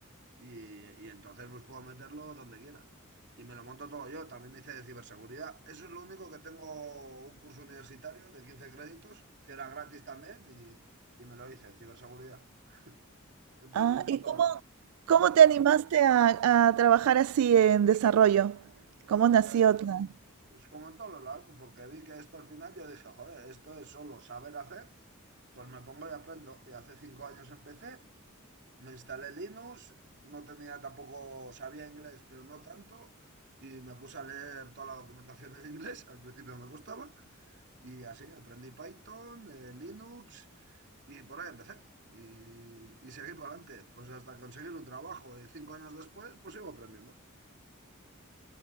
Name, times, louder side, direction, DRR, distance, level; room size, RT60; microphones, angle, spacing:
voice 1, 0.4-2.9 3.4-10.8 11.2-13.0 13.6-14.5 15.1-15.6 19.4-19.7 20.5-24.9 25.5-28.0 28.8-33.1 33.6-40.8 41.1-47.2, right 4 dB, 55° right, 2.9 m, -47 dB
voice 2, 13.7-14.5 15.1-18.6 19.1-20.1, right 9 dB, 85° right, 0.3 m, -23 dB
head